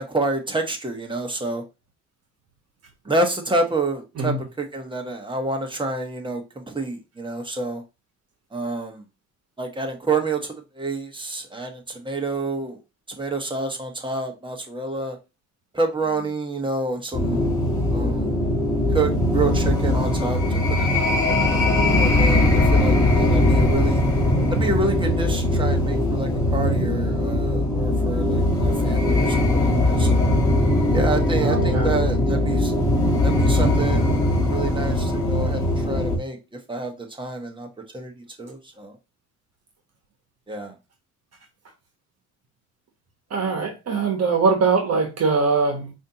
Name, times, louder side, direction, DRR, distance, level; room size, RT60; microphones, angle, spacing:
voice 1, 0.0-1.6 3.0-7.8 8.5-9.0 9.6-12.8 13.2-15.2 15.7-17.5 17.9-18.4 18.9-24.0 24.5-30.3 30.9-32.7 33.2-36.4 36.7-37.7 37.9-38.9 40.5-40.7, right 2 dB, 15° right, 1.1 m, -28 dB
sound 1, 17.1-36.2, left 1 dB, 10° left, 1.6 m, -20 dB
voice 2, 31.4-31.9 43.3-45.9, right 4 dB, 55° right, 1.2 m, -22 dB
5.0 x 2.8 x 2.9 m
cardioid pair, 90°, 30 cm